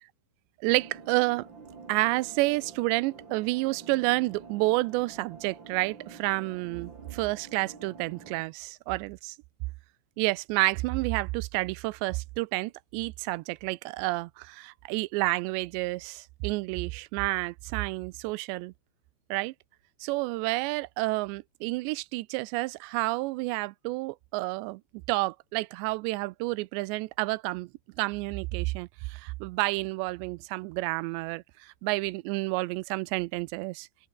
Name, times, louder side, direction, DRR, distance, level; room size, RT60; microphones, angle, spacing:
sound 1, 0.6-8.4, right 5 dB, 30° right, 3.3 m, -48 dB
voice 1, 0.6-1.5 1.9-9.4 10.2-18.7 19.3-19.5 20.0-24.8 25.1-27.7 28.0-33.9, right 22 dB, 90° right, 2.9 m, -30 dB
open air
omnidirectional pair, 4.9 m